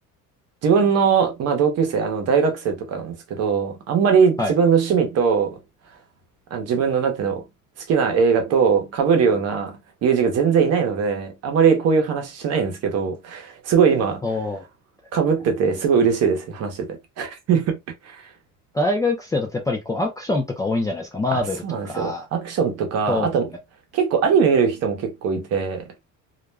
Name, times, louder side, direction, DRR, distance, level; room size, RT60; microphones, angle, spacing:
voice 1, 0.6-5.6 6.5-7.4 7.9-14.2 15.1-17.8 18.0-18.2 21.3-23.5 23.9-25.9, right 6 dB, 50° right, 0.8 m, -20 dB
voice 2, 14.2-14.6 18.7-22.3 23.1-23.3, left 2 dB, 10° left, 0.3 m, -24 dB
2.4 x 2.1 x 3.2 m
cardioid pair, 150°, 32 cm